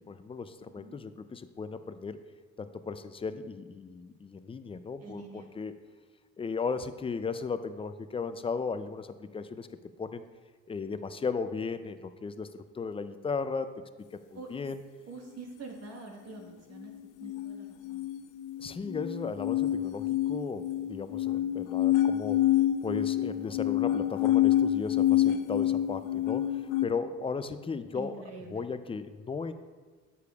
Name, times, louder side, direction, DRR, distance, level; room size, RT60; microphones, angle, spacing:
voice 1, 0.1-2.2 2.6-5.7 6.4-9.7 10.0-10.2 10.7-13.7 14.3-14.8 18.6-22.5 22.8-28.2 28.5-29.5, left 5 dB, 20° left, 11 dB, 0.3 m, -36 dB
voice 2, 5.0-5.5 14.3-14.5 15.1-16.9 17.2-18.0 27.9-28.7, right 3 dB, 55° right, 1 dB, 1.4 m, -45 dB
sound 1, 17.2-26.9, left 12 dB, 85° left, 0.5 m, -27 dB
9.4 x 6.9 x 2.3 m, 1.4 s
cardioid pair, 90°, 30 cm